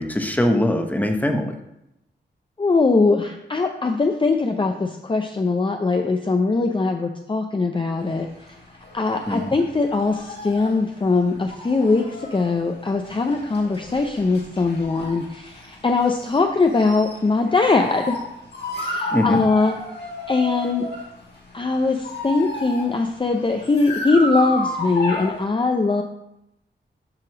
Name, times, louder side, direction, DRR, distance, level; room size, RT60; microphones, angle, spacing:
voice 1, 0.0-1.6 9.3-9.5 19.1-19.4, left 1 dB, 10° left, 4 dB, 0.9 m, -22 dB
voice 2, 2.6-8.3 8.9-18.2 18.7-19.8 20.3-20.9 21.5-26.0, left 3 dB, 25° left, 4 dB, 0.6 m, -21 dB
sound 1, 8.0-25.4, left 1 dB, 65° left, 2.2 m, -33 dB
7.7 x 3.0 x 6.1 m, 0.85 s
cardioid pair, 55°, 19 cm